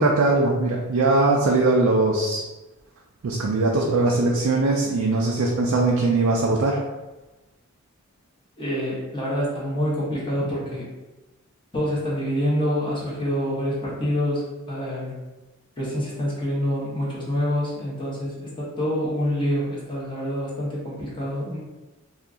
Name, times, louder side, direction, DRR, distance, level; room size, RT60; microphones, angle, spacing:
voice 1, 0.0-2.4 3.2-6.8, right 2 dB, 85° right, -1 dB, 0.4 m, -20 dB
voice 2, 8.6-10.9 11.7-15.1 15.8-21.6, equal, 25° left, -6 dB, 1.0 m, -26 dB
2.8 x 2.4 x 3.5 m, 1.1 s
head